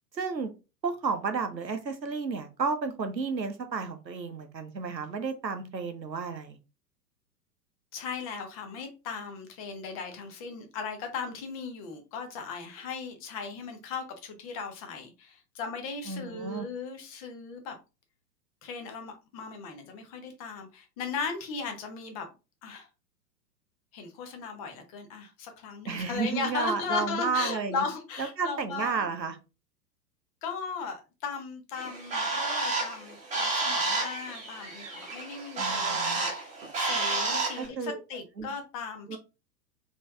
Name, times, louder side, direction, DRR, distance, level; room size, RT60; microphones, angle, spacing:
voice 1, 0.1-0.5 0.8-6.6 16.1-16.7 25.8-27.8 28.2-29.4 35.6-36.3 37.6-38.0 38.4-38.5 39.1-39.2, right 5 dB, 90° right, 0.8 m, -32 dB
voice 2, 7.9-17.8 18.6-22.3 22.6-22.9 23.9-29.1 30.4-39.2, left 5 dB, 25° left, 0.6 m, -37 dB
Bird, 31.8-37.7, right 3 dB, 15° right, 1.0 m, -30 dB
4.1 x 3.0 x 2.3 m
figure-of-eight pair, 105°, 50 cm